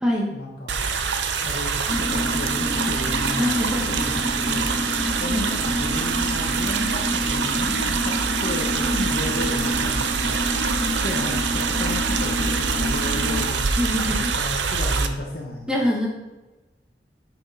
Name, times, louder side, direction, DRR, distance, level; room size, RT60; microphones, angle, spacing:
voice 1, 0.3-0.9 1.4-3.6 3.9-4.9 5.2-8.2 8.4-10.4 11.0-13.8 14.0-15.8, left 1 dB, 60° left, -1 dB, 1.0 m, -34 dB
sound 1, 0.7-15.1, right 5 dB, 90° right, 0.7 m, -25 dB
sound 2, 1.9-13.5, left 1 dB, 25° left, 0.7 m, -29 dB
voice 2, 3.4-3.8 5.2-5.5 8.8-9.1 10.6-10.9 13.8-14.3 15.7-16.1, left 1 dB, 5° right, -3 dB, 1.5 m, -24 dB
8.7 x 6.2 x 4.0 m, 1.1 s
head